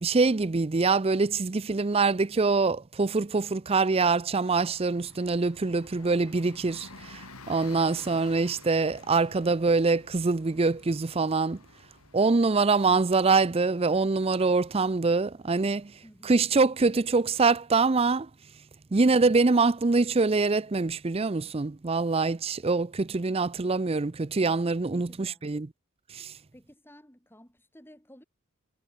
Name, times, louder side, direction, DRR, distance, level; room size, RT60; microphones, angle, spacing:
voice 1, 0.0-11.6 12.1-15.9 16.2-18.3 18.9-25.7 26.1-26.3, right 4 dB, 25° right, 0.5 m, -24 dB
Bus, 4.3-16.6, left 3 dB, 85° left, 7.6 m, -52 dB
voice 2, 6.0-6.4 16.0-16.3 24.8-25.4 26.5-28.2, equal, 10° left, 6.4 m, -55 dB
head